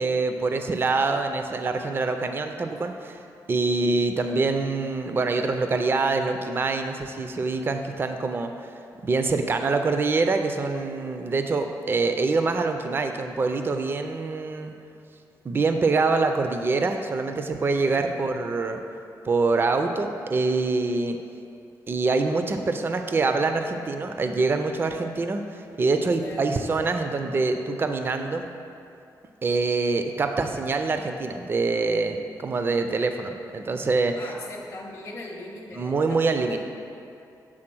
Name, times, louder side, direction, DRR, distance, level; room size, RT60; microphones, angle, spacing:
voice 1, 0.0-3.2 3.5-8.7 9.0-14.7 15.4-18.8 19.2-21.2 21.9-28.5 29.4-34.2 35.7-36.6, right 3 dB, 30° right, 6 dB, 0.4 m, -25 dB
voice 2, 17.9-18.2 26.2-26.5 34.2-36.6, left 2 dB, 35° left, -3 dB, 0.6 m, -40 dB
7.6 x 3.6 x 6.0 m, 2.5 s
wide cardioid pair, 120°, 7 cm